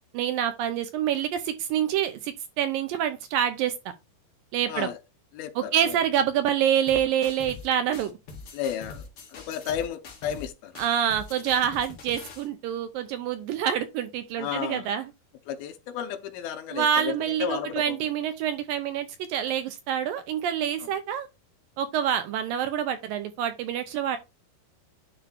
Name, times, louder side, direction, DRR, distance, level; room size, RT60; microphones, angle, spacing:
voice 1, 0.1-3.7 4.5-4.9 5.6-8.2 10.8-15.1 16.7-21.3 21.8-24.2, right 9 dB, 75° right, 2.3 m, -27 dB
voice 2, 4.7-5.0 5.3-6.0 8.5-10.7 14.4-14.9 15.5-18.1 20.8-20.9, left 9 dB, 80° left, 2.6 m, -33 dB
sound 1, 6.9-7.7 7.9-10.5 10.7-12.5, left 4 dB, 45° left, 2.2 m, -43 dB
9.7 x 3.2 x 4.6 m
omnidirectional pair, 4.5 m